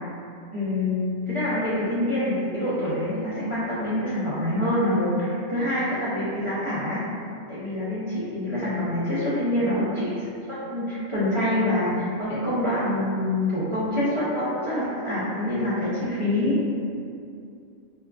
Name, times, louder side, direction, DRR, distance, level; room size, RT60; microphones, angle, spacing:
voice 1, 0.5-7.0 7.5-16.8, left 1 dB, 50° right, -12 dB, 0.3 m, -26 dB
4.2 x 2.4 x 2.3 m, 2.5 s
omnidirectional pair, 1.5 m